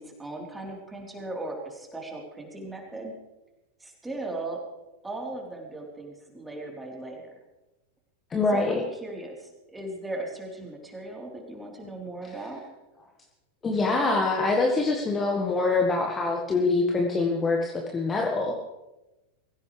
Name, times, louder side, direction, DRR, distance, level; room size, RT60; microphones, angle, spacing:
voice 1, 0.0-3.1 3.8-4.6 5.0-7.3 8.5-12.6, right 2 dB, 10° right, -1 dB, 3.9 m, -38 dB
voice 2, 8.3-8.8 13.6-18.5, left 3 dB, 20° left, 1 dB, 1.7 m, -24 dB
23.0 x 16.0 x 3.4 m, 1.0 s
figure-of-eight pair, 90°, 0 cm